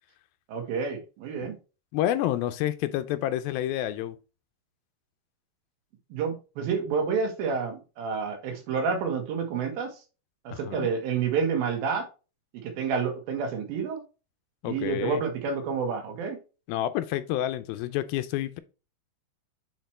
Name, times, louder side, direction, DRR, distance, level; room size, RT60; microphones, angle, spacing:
voice 1, 0.5-1.6 6.1-9.9 10.4-12.1 12.5-14.0 14.6-16.4, right 5 dB, 75° right, 3.2 m, -29 dB
voice 2, 1.9-4.2 10.5-10.9 14.6-15.2 16.7-18.6, left 13 dB, 85° left, 2.4 m, -29 dB
8.0 x 4.3 x 3.2 m
omnidirectional pair, 4.3 m